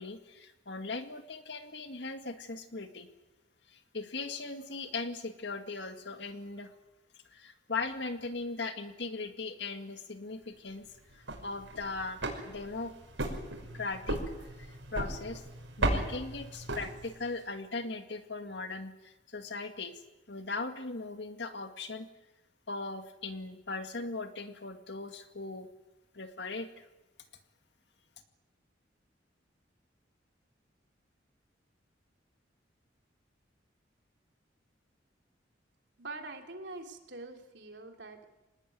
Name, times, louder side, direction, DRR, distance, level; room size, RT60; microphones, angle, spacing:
voice 1, 0.0-3.1 3.7-6.7 7.3-10.9 11.1-12.9 13.7-14.2 14.6-15.4 15.8-20.0 20.3-22.1 22.7-25.7 26.1-26.7, left 3 dB, 65° left, 7 dB, 2.1 m, -39 dB
sound 1, 11.1-17.4, right 1 dB, 85° right, 5.9 m, -36 dB
voice 2, 36.0-38.2, right 2 dB, 65° right, 3 dB, 3.3 m, -44 dB
25.5 x 19.5 x 9.4 m, 1.0 s
head